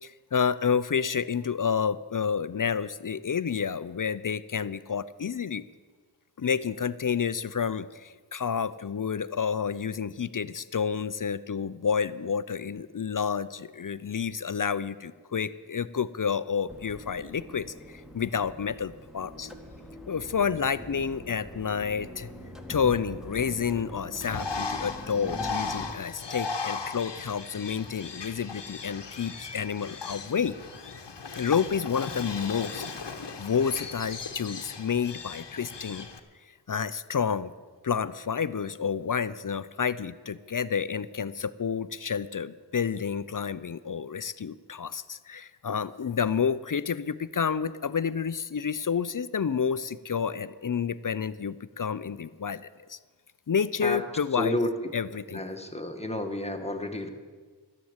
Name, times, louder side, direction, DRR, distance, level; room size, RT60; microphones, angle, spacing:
voice 1, 0.0-5.6 6.4-19.5 20.1-22.3 22.7-30.5 31.4-32.8 33.4-36.1 36.7-37.5 37.8-53.0 53.5-54.6 54.9-55.4, left 6 dB, 50° left, 15 dB, 0.5 m, -29 dB
sound 1, 16.7-26.0, equal, ahead, 1.7 m, -43 dB
Bird, 24.2-36.2, left 4 dB, 75° left, 1.1 m, -37 dB
voice 2, 54.3-54.9 55.3-57.1, left 1 dB, 15° left, 4 dB, 1.4 m, -31 dB
12.5 x 10.5 x 8.0 m, 1.4 s
wide cardioid pair, 55°, 43 cm